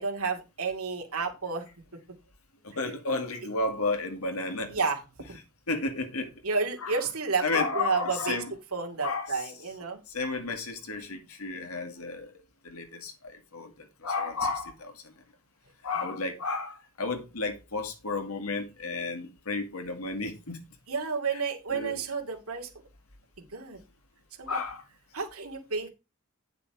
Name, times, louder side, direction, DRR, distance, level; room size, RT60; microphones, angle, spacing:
voice 1, 0.0-1.7 4.7-5.0 5.3-5.4 6.4-8.4 8.7-10.0 20.9-22.7 23.4-23.8 24.4-24.6 25.1-25.9, right 4 dB, 85° right, 2.4 m, -31 dB
voice 2, 2.6-4.7 5.7-6.3 6.8-7.0 7.4-8.5 9.0-9.4 10.1-12.3 12.6-14.9 15.8-20.6 21.7-22.0 24.5-24.8, left 3 dB, 90° left, 2.1 m, -32 dB
9.7 x 5.9 x 4.7 m
head